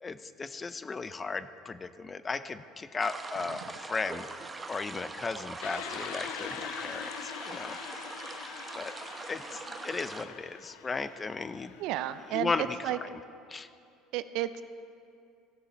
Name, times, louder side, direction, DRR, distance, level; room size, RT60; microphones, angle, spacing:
voice 1, 0.0-4.3 4.7-7.8 8.8-9.0 9.3-11.7 12.3-13.0 13.5-13.7, left 4 dB, 25° left, 13 dB, 0.5 m, -36 dB
sound 1, 3.0-10.3, right 3 dB, 20° right, 0.8 m, -42 dB
sound 2, 5.6-12.7, left 11 dB, 80° left, 0.5 m, -44 dB
voice 2, 11.8-13.0 14.1-14.6, right 13 dB, 70° right, 13 dB, 0.5 m, -33 dB
16.5 x 7.0 x 4.4 m, 2.5 s
supercardioid pair, 95°, 0 cm